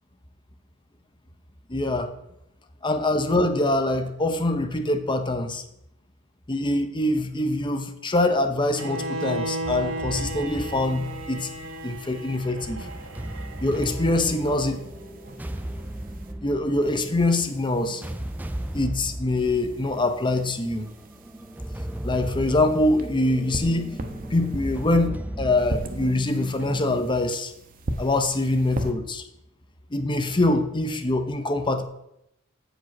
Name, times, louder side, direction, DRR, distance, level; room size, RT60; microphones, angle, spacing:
voice 1, 1.7-2.1 2.8-5.6 6.5-11.5 11.8-12.9 13.6-14.8 16.4-18.0 18.7-20.9 22.0-23.9 24.3-27.5 28.0-29.2 29.9-31.8, left 2 dB, 25° left, 7 dB, 0.8 m, -24 dB
Bowed string instrument, 8.7-14.8, right 1 dB, 65° right, 1.0 m, -35 dB
sound 1, 9.6-26.1, right 1 dB, 10° right, 0.4 m, -36 dB
sound 2, 10.5-12.4 12.9-16.3 16.8-18.9 19.4-25.1 25.6-28.9, right 1 dB, 40° right, 0.8 m, -39 dB
8.2 x 5.1 x 6.0 m, 0.81 s
head